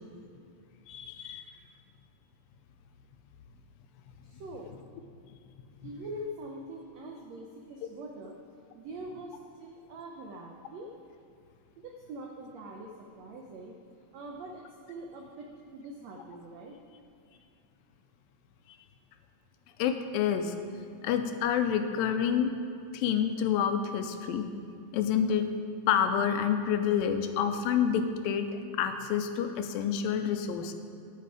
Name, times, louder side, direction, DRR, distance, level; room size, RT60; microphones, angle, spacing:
voice 1, 0.9-1.4 5.8-5.9 19.8-20.6 21.0-22.5 22.9-24.5 24.9-25.5 25.9-28.5 28.7-30.7, left 8 dB, 85° left, 8 dB, 2.3 m, -28 dB
voice 2, 4.2-4.7 5.8-8.3 8.7-10.9 11.8-13.8 14.1-16.8, right 1 dB, 85° right, 1 dB, 1.5 m, -43 dB
10.5 x 8.4 x 4.8 m, 2.6 s
omnidirectional pair, 4.1 m